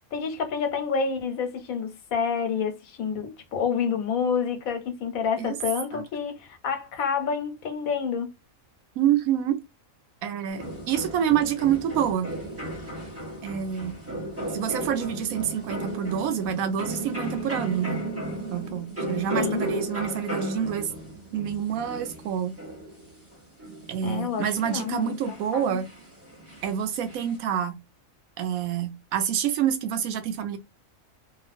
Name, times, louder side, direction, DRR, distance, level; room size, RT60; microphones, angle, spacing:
voice 1, 0.1-8.3 19.3-19.7 24.0-25.8, left 6 dB, 80° left, 1.2 m, -28 dB
voice 2, 9.0-9.6 10.2-12.3 13.4-13.9 14.5-18.0 18.5-20.9 21.3-22.5 23.9-25.9 26.6-27.8 28.4-30.6, right 9 dB, 80° right, 1.0 m, -27 dB
sound 1, 10.5-27.4, right 1 dB, 10° right, 1.2 m, -35 dB
3.0 x 2.3 x 2.4 m
omnidirectional pair, 1.4 m